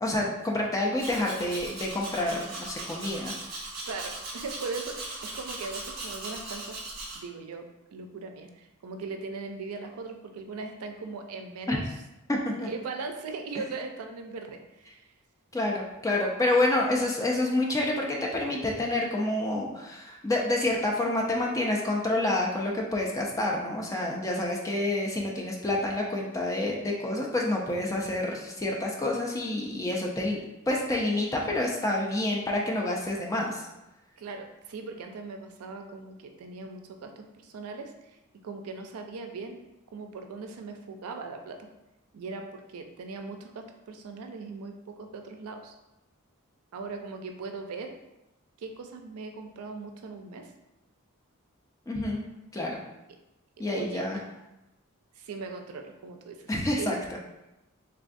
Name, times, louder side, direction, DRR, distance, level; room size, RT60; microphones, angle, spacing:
voice 1, 0.0-3.3 11.7-11.8 12.3-12.7 15.5-30.4 30.7-33.6 51.9-52.2 52.5-52.8 53.6-54.2 56.5-57.0, left 1 dB, 15° left, -1 dB, 0.4 m, -28 dB
Domestic sounds home sounds, 1.0-7.2, right 2 dB, 45° right, 0.8 m, -39 dB
voice 2, 3.9-6.8 7.1-11.8 12.6-15.1 34.2-38.2 38.4-39.6 39.9-41.7 42.1-45.7 46.7-47.9 48.6-50.5 53.7-54.1 55.2-56.5 56.8-57.0, right 4 dB, 85° right, 5 dB, 0.4 m, -39 dB
3.4 x 2.3 x 2.5 m, 0.94 s
head